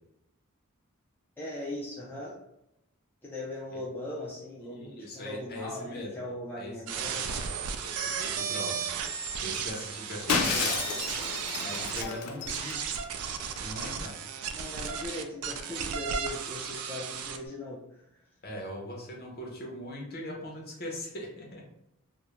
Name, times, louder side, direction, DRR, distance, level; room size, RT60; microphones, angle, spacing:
voice 1, 1.4-2.4 3.2-7.3 9.7-9.8 11.8-12.5 14.5-17.8, left 1 dB, 10° left, -6 dB, 0.3 m, -39 dB
voice 2, 4.7-6.1 6.6-6.7 7.2-7.4 7.8-8.9 9.4-10.8 11.6-12.9 13.6-14.1 18.4-21.6, equal, 45° left, -1 dB, 0.7 m, -40 dB
sound 1, 6.9-12.0 12.5-17.4, right 7 dB, 80° right, 0.3 m, -34 dB
Shatter, 10.3-13.0, left 5 dB, 75° left, 0.4 m, -31 dB
2.4 x 2.0 x 2.9 m, 0.84 s
head